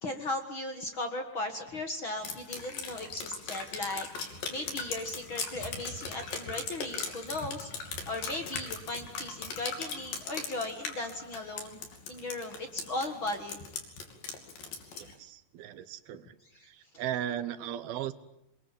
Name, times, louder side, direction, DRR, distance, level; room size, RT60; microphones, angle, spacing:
voice 1, 0.0-4.1 4.5-11.8 12.1-13.6 14.9-15.1, left 2 dB, 45° left, 6 dB, 1.9 m, -37 dB
Drip, 2.2-15.1, left 5 dB, 65° left, 4.5 m, -39 dB
voice 2, 15.0-16.4 16.7-18.1, right 11 dB, 80° right, 14 dB, 3.1 m, -37 dB
27.0 x 22.0 x 9.1 m, 0.80 s
omnidirectional pair, 4.3 m